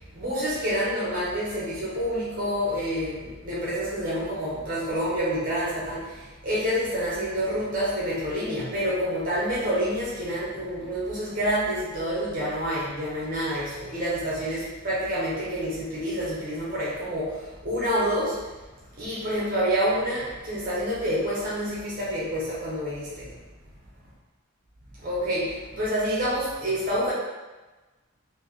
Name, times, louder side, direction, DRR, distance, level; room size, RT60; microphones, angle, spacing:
voice 1, 0.1-18.5 19.0-23.4 25.0-27.1, equal, 40° right, -8 dB, 1.0 m, -28 dB
3.3 x 2.7 x 3.6 m, 1.2 s
head